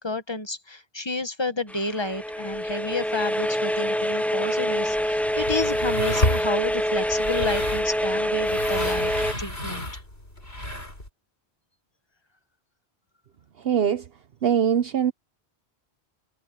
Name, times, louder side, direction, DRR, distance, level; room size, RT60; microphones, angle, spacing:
voice 1, 0.0-9.1 9.4-10.0, left 2 dB, 25° left, 1.1 m, -30 dB
sound 1, 1.7-9.3, equal, ahead, 0.5 m, -26 dB
sound 2, 4.8-11.1, left 1 dB, 70° left, 6.1 m, -31 dB
voice 2, 13.6-14.0 14.4-15.1, right 8 dB, 65° right, 1.1 m, -22 dB
omnidirectional pair, 1.1 m